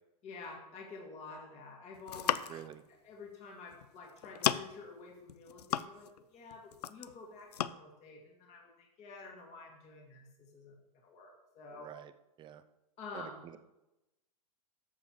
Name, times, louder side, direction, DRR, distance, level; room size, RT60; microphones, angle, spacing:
voice 1, 0.2-2.6 3.0-6.1 6.3-11.9 13.0-13.6, left 3 dB, 35° left, -1 dB, 2.2 m, -49 dB
sound 1, 1.9-2.7 3.7-3.9 4.2-4.9 5.3-6.2 6.5-7.2 7.5-7.7, left 11 dB, 85° left, 0.5 m, -34 dB
voice 2, 2.5-2.8 11.7-12.1 12.4-12.6 13.1-13.6, right 10 dB, 25° right, 10 dB, 0.6 m, -48 dB
13.5 x 7.1 x 3.1 m, 0.97 s
hypercardioid pair, 125°, 20 cm